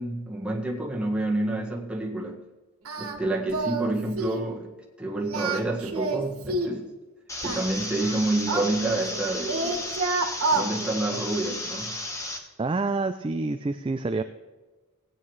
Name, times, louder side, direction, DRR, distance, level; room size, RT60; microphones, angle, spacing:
voice 1, 0.0-2.4 3.0-4.7 5.0-6.9 7.4-9.8 10.5-12.0, right 2 dB, 5° right, -3 dB, 1.8 m, -28 dB
Singing, 2.8-3.2 3.5-3.9 4.2-4.5 5.2-6.8 7.4-9.2 9.5-10.7, right 3 dB, 70° right, 1.5 m, -28 dB
sound 1, 7.3-12.4, left 1 dB, 15° left, 1.3 m, -34 dB
voice 2, 12.6-14.2, right 3 dB, 25° right, 9 dB, 0.4 m, -27 dB
17.5 x 9.1 x 3.2 m, 1.2 s
head